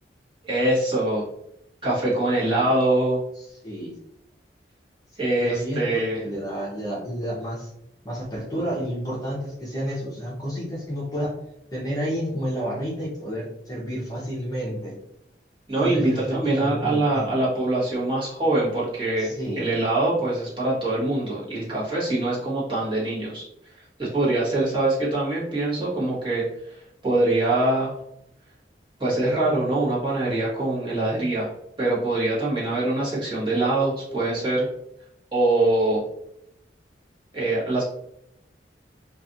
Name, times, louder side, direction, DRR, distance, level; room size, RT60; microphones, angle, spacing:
voice 1, 0.4-1.3 1.8-3.2 5.2-6.2 15.7-23.5 24.0-27.9 29.0-31.5 31.8-34.7 35.3-36.0 37.3-37.8, right 2 dB, 25° right, -8 dB, 1.0 m, -23 dB
voice 2, 3.4-4.0 5.4-7.7 8.0-11.3 11.7-14.9 15.7-17.4 19.2-19.7, equal, 20° left, -5 dB, 0.6 m, -30 dB
2.4 x 2.4 x 2.6 m, 0.78 s
head